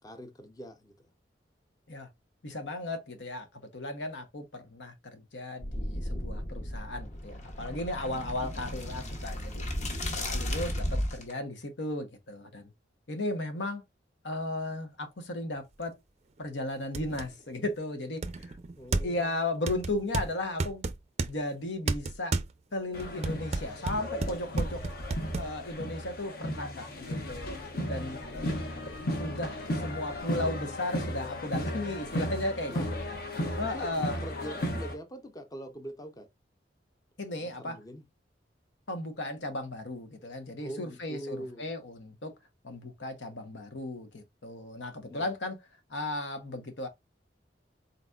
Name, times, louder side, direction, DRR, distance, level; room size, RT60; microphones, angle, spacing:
voice 1, 0.0-1.1 18.7-19.3 32.7-32.9 33.7-33.9 34.2-36.3 37.4-38.0 40.6-41.7 45.1-45.3, right 1 dB, 20° left, 0.6 m, -43 dB
voice 2, 2.4-3.5 3.7-9.7 10.1-12.7 13.1-13.8 14.2-16.0 16.4-18.3 19.0-20.8 21.3-22.4 22.7-24.8 25.4-27.6 27.9-28.5 29.2-32.8 33.6-34.2 37.2-37.8 38.9-42.3 42.6-45.6 45.9-46.9, left 2 dB, 80° left, 1.0 m, -35 dB
sound 1, 5.6-11.3, left 1 dB, 40° left, 1.1 m, -34 dB
sound 2, 15.8-15.9 16.4-16.5 16.9-17.3 18.2-19.3 19.7-21.3 21.9-22.5 23.0-25.5, right 3 dB, 35° right, 0.5 m, -31 dB
sound 3, 22.9-35.0, equal, 55° left, 1.0 m, -35 dB
4.1 x 4.0 x 2.3 m
head